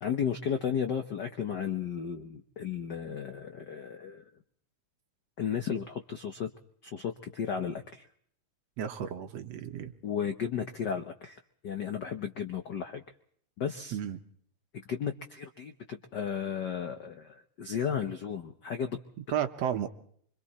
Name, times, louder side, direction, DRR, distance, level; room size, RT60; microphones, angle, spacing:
voice 1, 0.0-4.2 5.4-6.5 6.8-8.0 10.0-13.0 13.6-14.0 14.9-19.0, left 7 dB, 85° left, 7 dB, 0.9 m, -34 dB
voice 2, 8.8-9.9 13.9-14.2 19.3-19.9, right 9 dB, 65° right, 8 dB, 2.1 m, -32 dB
25.5 x 25.5 x 4.3 m, 0.63 s
omnidirectional pair, 3.4 m